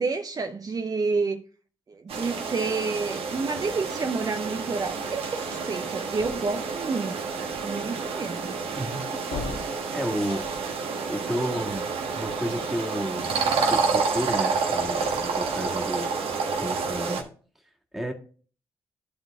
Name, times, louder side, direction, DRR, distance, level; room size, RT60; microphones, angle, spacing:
voice 1, 0.0-1.4 1.9-7.2 7.6-8.5, right 4 dB, 40° right, 0.6 m, -29 dB
sound 1, 2.1-17.2, right 4 dB, 75° right, 1.4 m, -29 dB
sound 2, 6.2-6.9 9.2-10.8 14.7-15.7, left 4 dB, 75° left, 1.3 m, -39 dB
voice 2, 8.7-9.2 9.9-10.8 11.1-13.3 13.7-16.1 16.6-17.3 17.9-18.1, equal, ahead, 1.8 m, -32 dB
12.0 x 4.0 x 3.5 m
cardioid pair, 60°, 10 cm